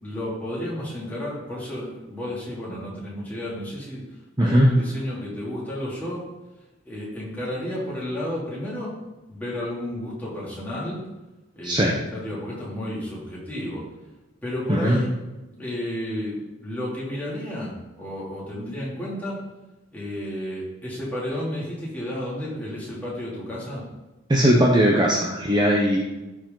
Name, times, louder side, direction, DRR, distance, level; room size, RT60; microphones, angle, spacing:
voice 1, 0.0-4.0 4.4-6.2 6.8-8.9 9.3-11.0 11.5-13.8 14.4-15.1 15.6-19.4 19.9-23.8, left 1 dB, 10° left, -7 dB, 2.9 m, -32 dB
voice 2, 4.4-4.7 11.6-11.9 14.7-15.0 24.3-26.0, equal, 20° right, 0 dB, 0.8 m, -19 dB
13.5 x 4.9 x 3.9 m, 1.1 s
head